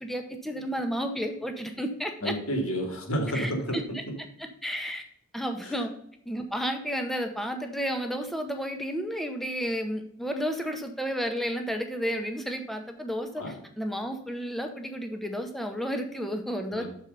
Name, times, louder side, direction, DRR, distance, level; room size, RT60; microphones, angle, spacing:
voice 1, 0.0-2.3 3.3-4.0 4.6-5.0 5.3-5.9 6.3-16.8, equal, ahead, 5 dB, 0.8 m, -32 dB
voice 2, 2.2-4.1 5.6-5.8 13.4-13.6 16.7-16.9, equal, 80° left, 3 dB, 2.0 m, -30 dB
6.6 x 4.4 x 6.7 m, 0.71 s
head